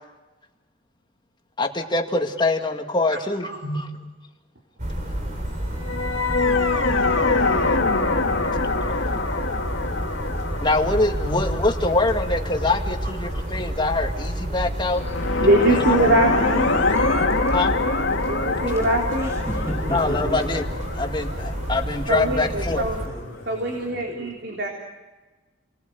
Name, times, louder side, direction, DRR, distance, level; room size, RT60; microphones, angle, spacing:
voice 1, 1.6-3.9 10.6-15.0 15.7-16.1 17.5-17.7 19.9-20.6 20.9-22.9, left 2 dB, 25° left, 4 dB, 2.0 m, -24 dB
voice 2, 3.4-3.8 11.2-11.4 15.4-16.8 18.3-19.4 22.1-23.0 23.5-24.7, right 1 dB, 60° right, 0 dB, 3.8 m, -23 dB
sound 1, 4.8-23.1, right 1 dB, 40° right, 3.6 m, -30 dB
sound 2, 5.8-13.0 14.9-22.7, left 3 dB, 75° left, 2.4 m, -25 dB
voice 3, 19.2-20.4 22.7-24.2, equal, 15° right, 0 dB, 6.7 m, -34 dB
30.0 x 20.5 x 8.0 m, 1.2 s
head